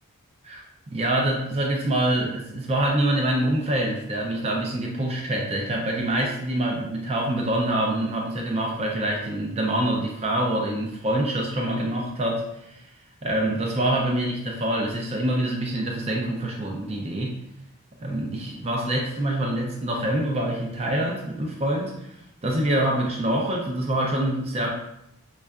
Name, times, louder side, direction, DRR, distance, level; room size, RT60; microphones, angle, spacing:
voice 1, 0.4-12.8 13.2-17.4 18.0-22.2 22.4-24.7, right 1 dB, 30° right, -1 dB, 0.4 m, -25 dB
5.2 x 2.3 x 2.3 m, 0.80 s
head